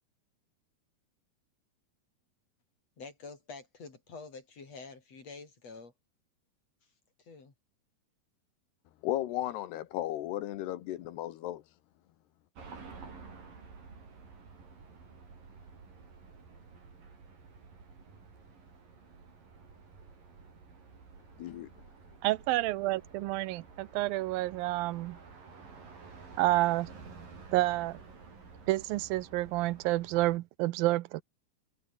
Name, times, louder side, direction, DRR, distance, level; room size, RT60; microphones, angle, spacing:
voice 1, 3.0-5.9 7.2-7.5, left 4 dB, 40° left, 5.7 m, -47 dB
voice 2, 9.0-11.7 21.4-21.7, left 14 dB, 85° left, 3.4 m, -35 dB
sound 1, 12.6-30.4, right 4 dB, 55° right, 7.5 m, -51 dB
voice 3, 22.2-25.2 26.4-26.9 27.5-28.0 28.7-31.2, right 18 dB, 75° right, 2.3 m, -29 dB
omnidirectional pair, 4.7 m